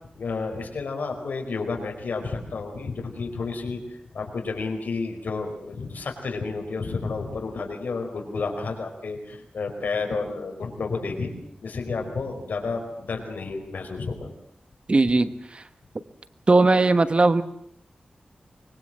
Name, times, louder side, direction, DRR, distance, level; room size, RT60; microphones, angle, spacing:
voice 1, 0.1-11.3 11.6-14.3, left 4 dB, 90° left, 3 dB, 4.8 m, -31 dB
voice 2, 14.9-15.6 16.5-17.4, right 3 dB, 40° right, 12 dB, 1.3 m, -19 dB
24.5 x 22.5 x 7.7 m, 0.68 s
wide cardioid pair, 90°, 3 cm